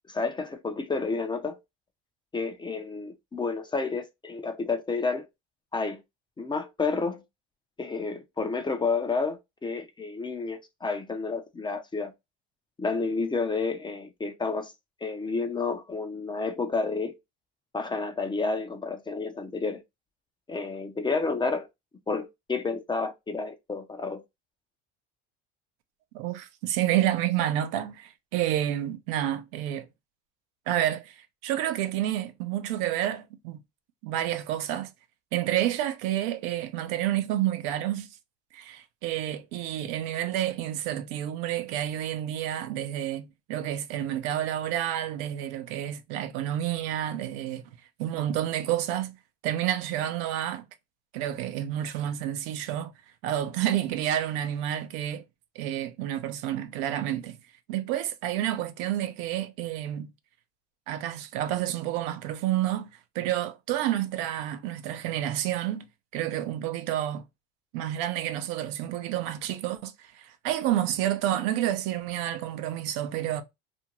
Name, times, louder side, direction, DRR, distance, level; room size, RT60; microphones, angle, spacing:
voice 1, 0.1-1.6 2.3-5.3 5.7-6.0 6.4-7.2 7.8-12.1 12.8-14.7 15.0-17.2 17.7-19.8 20.5-21.7 22.1-24.2, left 4 dB, 15° left, 0.4 m, -30 dB
voice 2, 26.1-29.9 30.7-33.6 34.0-34.9 35.3-38.1 38.5-47.6 48.0-49.2 49.4-50.6 51.1-52.9 53.2-55.2 55.6-57.4 57.7-60.1 60.9-62.9 63.1-65.9 66.1-67.2 67.7-73.4, right 12 dB, 75° right, 0.6 m, -29 dB
2.5 x 2.2 x 2.8 m
supercardioid pair, 100°, 29 cm